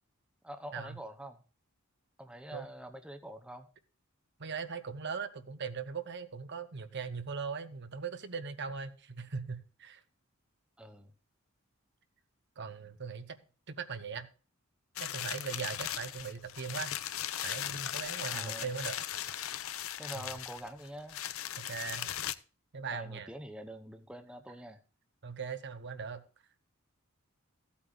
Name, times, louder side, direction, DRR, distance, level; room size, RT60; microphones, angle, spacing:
voice 1, 0.4-1.4 2.2-3.7 10.8-11.1 18.3-18.7 20.0-21.2 22.9-24.8, right 1 dB, 5° right, 0.9 m, -45 dB
voice 2, 4.4-10.0 12.6-13.4 13.7-14.3 15.0-17.0 17.4-19.0 20.1-20.3 21.6-22.1 22.7-23.3 25.2-26.2, right 5 dB, 55° right, 1.0 m, -39 dB
sound 1, 15.0-22.3, left 11 dB, 70° left, 0.6 m, -38 dB
15.5 x 8.5 x 2.5 m
head